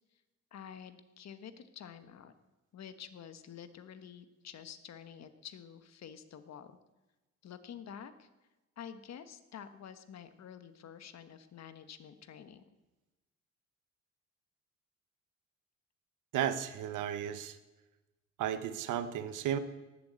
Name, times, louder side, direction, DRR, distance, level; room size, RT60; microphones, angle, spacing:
voice 1, 0.5-2.3 2.7-6.8 7.4-8.3 8.8-12.6, left 8 dB, 60° left, 10 dB, 1.3 m, -49 dB
voice 2, 16.3-17.6 18.4-19.6, right 10 dB, 85° right, 11 dB, 1.1 m, -34 dB
18.5 x 7.6 x 8.2 m, 1.1 s
cardioid pair, 90°, 30 cm